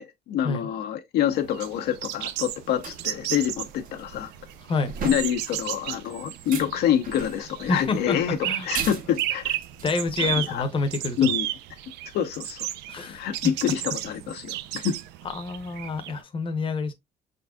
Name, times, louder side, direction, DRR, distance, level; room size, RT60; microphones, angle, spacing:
voice 1, 0.0-4.3 5.0-8.4 8.6-9.6 10.2-10.6 11.2-11.5 12.1-12.7 13.0-15.0, left 9 dB, 75° left, 0.7 m, -27 dB
sound 1, 1.3-16.2, right 13 dB, 90° right, 0.4 m, -34 dB
sound 2, 2.4-10.6, right 4 dB, 55° right, 1.0 m, -39 dB
voice 2, 7.7-8.7 9.8-11.3 12.9-13.3 15.3-16.9, left 3 dB, 30° left, 0.8 m, -28 dB
5.2 x 3.9 x 2.3 m
cardioid pair, 110°, 17 cm